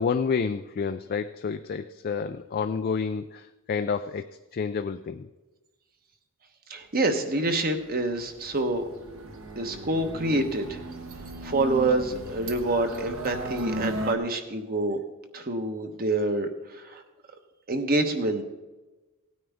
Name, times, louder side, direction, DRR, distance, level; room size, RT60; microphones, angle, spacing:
voice 1, 0.0-4.3 4.5-5.3, left 5 dB, 40° left, 8 dB, 0.3 m, -29 dB
voice 2, 6.7-8.8 9.6-10.8 11.4-15.0 15.3-17.0 17.7-18.4, right 2 dB, 40° right, 6 dB, 1.1 m, -27 dB
sound 1, 7.7-14.1, right 1 dB, 60° right, 1.3 m, -36 dB
17.0 x 9.4 x 3.6 m, 1.2 s
head